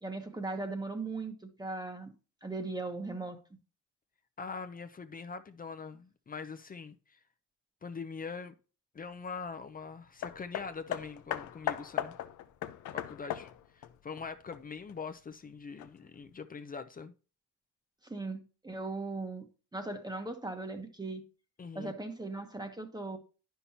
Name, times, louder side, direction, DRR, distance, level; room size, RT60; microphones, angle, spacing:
voice 1, 0.0-2.1 2.4-3.4 18.0-19.4 19.7-21.2 21.7-23.2, right 3 dB, 15° right, 1.1 m, -38 dB
voice 2, 4.4-7.2 7.8-8.5 8.9-12.2 12.9-17.1 21.6-21.9, left 5 dB, 30° left, 0.6 m, -43 dB
Hammer, 10.2-15.0 15.8-15.9, left 11 dB, 75° left, 0.6 m, -38 dB
9.8 x 5.7 x 2.8 m
cardioid pair, 90°, 30 cm